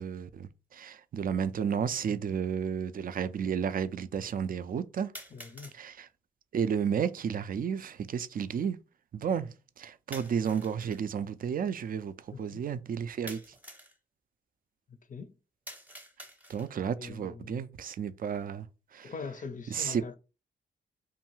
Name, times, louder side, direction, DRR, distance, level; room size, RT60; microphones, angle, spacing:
voice 1, 0.0-5.1 5.7-6.1 6.5-8.8 9.1-9.5 9.8-13.4 16.5-18.7 18.9-19.1 19.7-20.0, right 7 dB, 45° right, 0.4 m, -32 dB
sound 1, 0.8-0.9 1.9-2.0 5.1-5.8 10.1-11.0 13.3-14.0 15.7-16.8, equal, 10° right, 0.8 m, -47 dB
voice 2, 5.3-5.8 12.3-12.6 15.1-15.3 17.0-17.6 19.0-20.2, left 5 dB, 40° left, 0.5 m, -42 dB
2.6 x 2.3 x 3.0 m
supercardioid pair, 50°, 21 cm